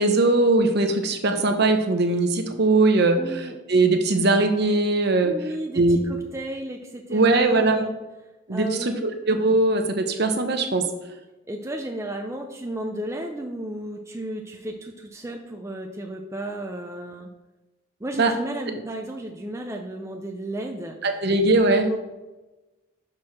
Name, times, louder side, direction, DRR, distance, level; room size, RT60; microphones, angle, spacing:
voice 1, 0.0-5.4 5.7-6.0 7.1-7.9 8.5-10.9 18.2-18.3 21.0-21.9, right 2 dB, 50° right, 6 dB, 0.8 m, -20 dB
voice 2, 3.2-3.6 5.2-7.9 8.5-9.1 11.5-17.3 18.0-21.1 21.8-22.0, right 1 dB, 15° right, 2 dB, 0.5 m, -33 dB
6.1 x 4.8 x 5.7 m, 1.1 s
head